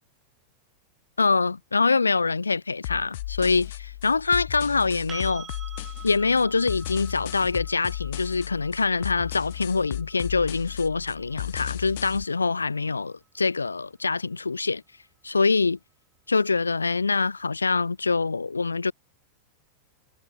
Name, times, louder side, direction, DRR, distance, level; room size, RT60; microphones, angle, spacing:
voice 1, 1.2-5.5 6.0-14.8 15.2-15.8 16.3-18.9, left 4 dB, 80° left, 1.2 m, -24 dB
sound 1, 2.8-12.2, left 16 dB, 55° left, 5.5 m, -35 dB
sound 2, 5.1-12.9 15.7-15.8, right 7 dB, 20° right, 6.5 m, -47 dB
figure-of-eight pair, 90°, 0 cm